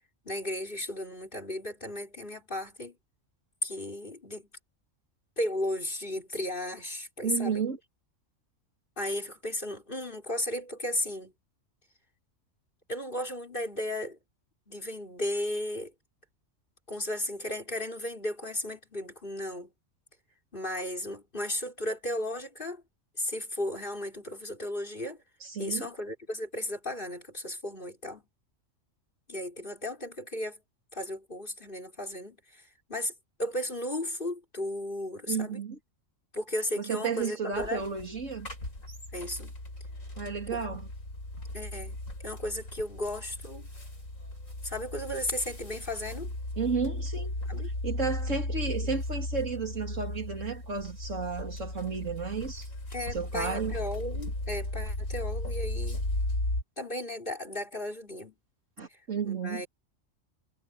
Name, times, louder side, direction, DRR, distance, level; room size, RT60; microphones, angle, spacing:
voice 1, 0.2-3.0 3.6-4.5 5.4-7.6 9.0-11.3 12.9-14.2 14.7-15.9 16.9-19.7 20.5-22.8 23.2-25.2 25.6-28.2 29.3-30.6 30.9-32.6 32.9-33.1 33.4-35.6 36.3-37.8 39.1-39.5 40.5-40.6 41.5-42.0 42.2-43.7 44.6-46.3 47.5-47.7 52.9-56.0 56.8-58.3 59.2-59.7, left 1 dB, 40° left, 5.6 m, -35 dB
voice 2, 7.2-7.8 25.4-25.9 35.3-35.8 36.8-38.5 40.2-40.9 46.6-47.3 47.8-52.7 53.1-53.8 58.8-59.6, right 5 dB, 65° right, 3.0 m, -32 dB
sound 1, 37.5-56.6, left 1 dB, 75° left, 8.0 m, -36 dB
omnidirectional pair, 1.4 m